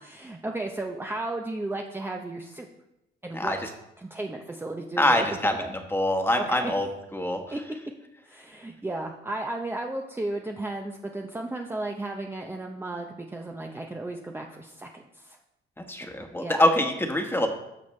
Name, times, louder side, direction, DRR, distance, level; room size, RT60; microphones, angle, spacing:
voice 1, 0.0-2.7 3.2-3.6 4.0-5.7 6.3-6.7 7.5-7.6 8.2-15.4 16.0-16.1 16.4-16.6, right 2 dB, 10° right, 2 dB, 0.7 m, -34 dB
voice 2, 5.0-5.5 5.9-6.9 7.1-7.4 15.9-17.5, left 1 dB, 10° left, 4 dB, 1.4 m, -24 dB
12.5 x 6.4 x 3.3 m, 0.89 s
cardioid pair, 90°, 20 cm